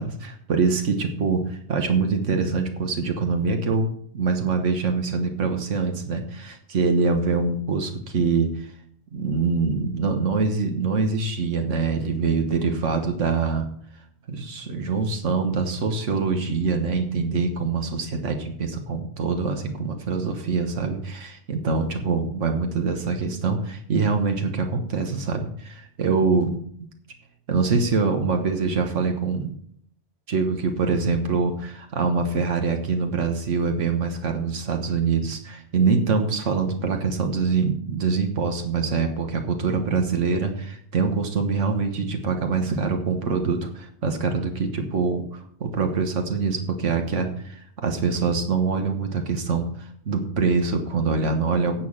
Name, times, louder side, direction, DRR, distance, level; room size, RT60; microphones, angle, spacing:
voice 1, 0.0-8.7 9.1-13.7 14.3-26.6 27.5-29.6 30.3-51.9, right 4 dB, 80° right, 5 dB, 1.7 m, -24 dB
10.5 x 7.1 x 7.3 m, 0.64 s
omnidirectional pair, 1.2 m